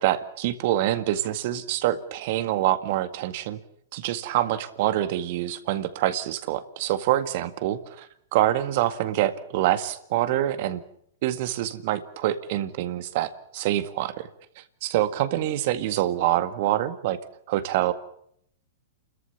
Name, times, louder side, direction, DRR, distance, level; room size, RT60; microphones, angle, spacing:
voice 1, 0.0-3.6 3.9-10.8 11.2-14.3 14.6-17.2 17.5-17.9, right 13 dB, 55° right, 11 dB, 1.9 m, -26 dB
29.0 x 14.0 x 8.5 m, 0.69 s
hypercardioid pair, 130°, 0 cm